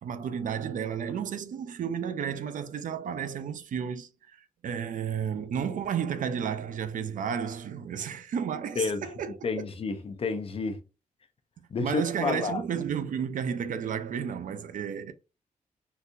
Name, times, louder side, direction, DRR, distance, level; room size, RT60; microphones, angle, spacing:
voice 1, 0.0-4.4 4.6-9.7 11.8-15.1, right 7 dB, 70° right, 0.5 m, -32 dB
voice 2, 9.4-10.8 11.7-12.6, left 4 dB, 45° left, 0.6 m, -30 dB
3.9 x 2.7 x 2.4 m
wide cardioid pair, 125°, 14 cm